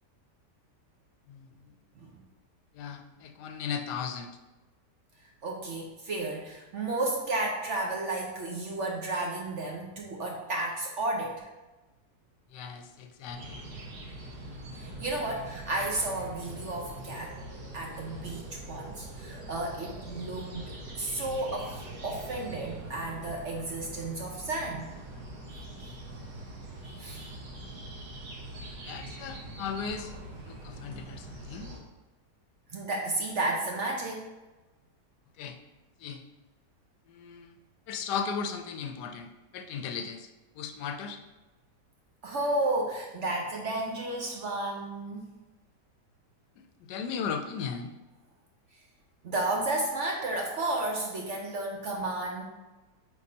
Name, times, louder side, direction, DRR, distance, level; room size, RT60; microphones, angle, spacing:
voice 1, 1.3-1.7 2.7-4.3 12.5-13.6 28.8-30.1 30.5-31.7 35.4-35.6 36.0-36.2 37.1-37.6 37.9-40.3 40.6-41.2 46.6-48.0, left 6 dB, 75° left, 6 dB, 1.1 m, -37 dB
voice 2, 5.4-11.5 14.7-17.3 17.7-21.7 22.0-24.9 25.5-26.0 26.8-27.4 32.7-34.3 42.2-45.3 49.2-52.4, right 2 dB, 55° right, -1 dB, 1.0 m, -32 dB
sound 1, 13.3-13.7 14.8-15.2 16.5-16.9 18.1-18.5 20.3-23.2 26.1-26.4, equal, 25° right, 1.2 m, -50 dB
sound 2, 13.4-31.8, right 1 dB, 80° right, 1.9 m, -43 dB
8.4 x 4.2 x 2.8 m, 1.1 s
omnidirectional pair, 1.8 m